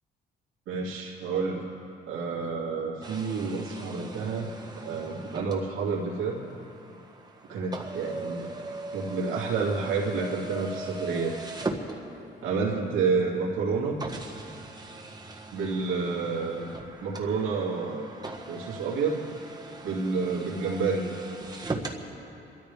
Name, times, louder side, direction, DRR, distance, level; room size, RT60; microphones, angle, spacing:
voice 1, 0.7-1.7 2.1-4.5 4.8-6.4 7.5-8.5 8.9-11.3 12.4-14.0 15.5-16.7 17.0-18.1 18.5-19.3 19.8-21.1, right 4 dB, 90° right, -4 dB, 2.7 m, -29 dB
sound 1, 3.0-12.5 13.2-13.3 14.0-22.0, right 2 dB, 20° right, 1.5 m, -40 dB
28.0 x 13.5 x 3.5 m, 2.8 s
cardioid pair, 90°, 20 cm